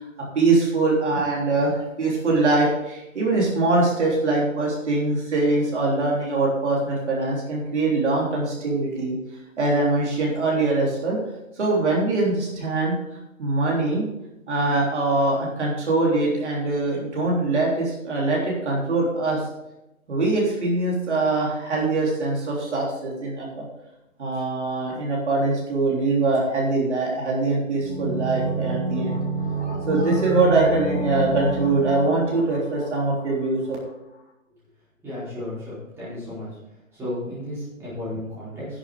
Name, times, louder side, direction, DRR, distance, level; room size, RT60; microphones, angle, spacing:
voice 1, 0.3-9.1 9.6-11.2 11.5-12.9 13.4-14.1 14.5-19.4 20.1-23.6 24.2-29.2 29.6-33.8, right 2 dB, 55° right, -3 dB, 3.5 m, -23 dB
sound 1, 27.8-33.5 33.7-33.8, right 2 dB, 45° left, 3.2 m, -29 dB
voice 2, 35.0-36.5 36.9-38.8, left 1 dB, 5° right, -11 dB, 4.6 m, -33 dB
11.0 x 7.5 x 5.1 m, 0.91 s
hypercardioid pair, 160°, 40 cm